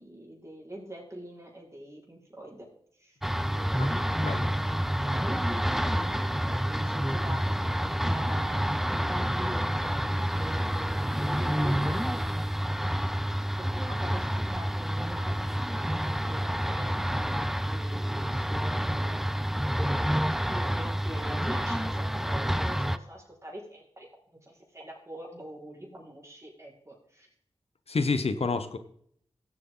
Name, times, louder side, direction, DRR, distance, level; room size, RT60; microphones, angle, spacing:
voice 1, 0.0-2.7 2.9-3.2 3.5-4.5 5.3-12.6 13.0-13.1 13.6-15.7 16.0-19.5 19.7-20.2 20.5-27.3, right 1 dB, 25° right, -4 dB, 5.1 m, -45 dB
sound 1, 3.2-23.0, equal, 5° right, 0.6 m, -28 dB
voice 2, 27.9-28.8, left 4 dB, 70° left, 10 dB, 1.1 m, -28 dB
16.5 x 7.8 x 4.0 m, 0.67 s
cardioid pair, 50°, 11 cm